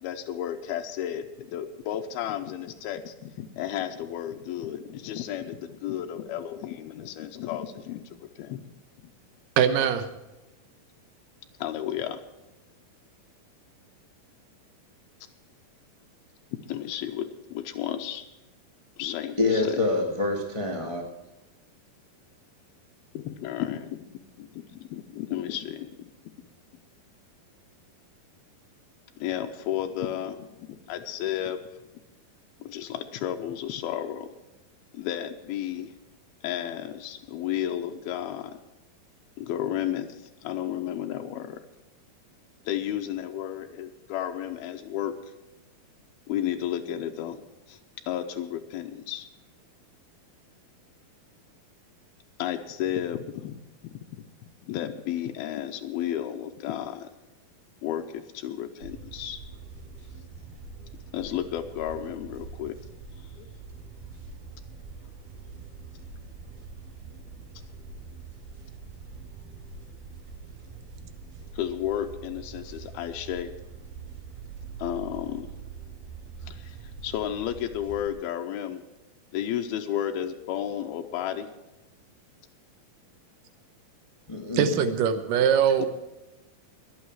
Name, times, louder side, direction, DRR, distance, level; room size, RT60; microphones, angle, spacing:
voice 1, 0.0-8.6 9.0-9.1 11.6-12.2 16.7-18.2 19.0-19.8 23.1-26.1 29.2-31.6 32.6-34.3 34.9-35.9 36.4-38.6 39.4-41.6 42.7-45.1 46.3-47.4 47.7-47.8 48.1-49.3 52.4-53.6 53.8-54.0 54.6-57.1 57.8-59.4 61.1-62.8 63.2-63.5 71.5-73.5 74.8-75.5 76.4-78.8 79.3-81.5 85.8-85.9, left 11 dB, 90° left, 4 dB, 2.7 m, -33 dB
voice 2, 9.6-10.1 84.5-85.9, right 8 dB, 70° right, 9 dB, 2.5 m, -22 dB
voice 3, 19.4-21.0 84.3-84.8, left 3 dB, 30° left, 0 dB, 0.5 m, -26 dB
sound 1, 58.8-78.1, right 5 dB, 90° right, 4.9 m, -44 dB
21.5 x 8.6 x 4.8 m, 1.0 s
omnidirectional pair, 4.3 m